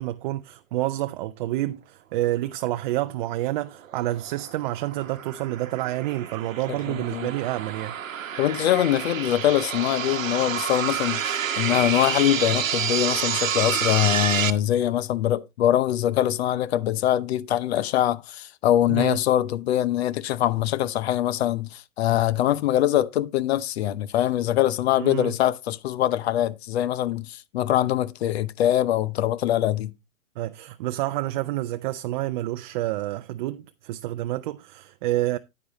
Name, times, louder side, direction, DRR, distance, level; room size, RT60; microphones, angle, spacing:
voice 1, 0.0-7.9 18.9-19.2 25.0-25.3 30.4-35.4, right 16 dB, 40° right, 0.6 m, -28 dB
sound 1, 3.7-14.5, right 8 dB, 80° right, 1.1 m, -29 dB
voice 2, 6.9-7.3 8.4-29.9, left 12 dB, 50° left, 0.9 m, -23 dB
9.7 x 9.5 x 2.9 m
figure-of-eight pair, 115°, 40 cm